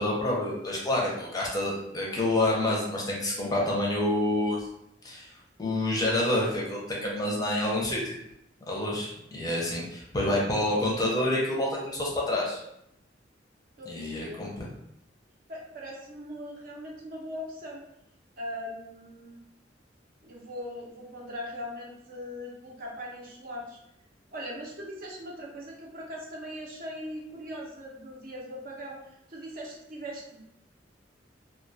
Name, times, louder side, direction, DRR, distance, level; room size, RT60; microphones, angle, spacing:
voice 1, 0.0-4.6 5.0-5.3 5.6-8.2 8.7-12.6 13.9-14.7, left 1 dB, 20° left, -3 dB, 0.5 m, -28 dB
voice 2, 13.8-14.4 15.5-17.8 18.4-19.4 20.2-23.8 24.3-29.0 29.3-30.4, equal, 50° right, -3 dB, 0.6 m, -40 dB
2.2 x 2.2 x 2.6 m, 0.78 s
head